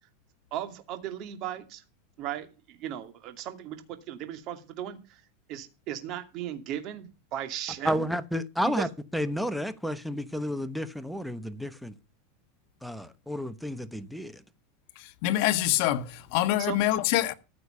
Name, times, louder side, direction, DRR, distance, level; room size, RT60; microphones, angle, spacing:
voice 1, 0.5-1.8 2.2-5.2 5.5-8.1 8.6-8.9 16.6-16.8, right 11 dB, 45° right, 2.5 m, -36 dB
voice 2, 7.8-8.9 9.1-11.9 12.8-14.4, equal, ahead, 1.0 m, -31 dB
voice 3, 15.0-17.3, left 14 dB, 55° left, 1.3 m, -25 dB
14.5 x 6.6 x 5.6 m
supercardioid pair, 145°, 0 cm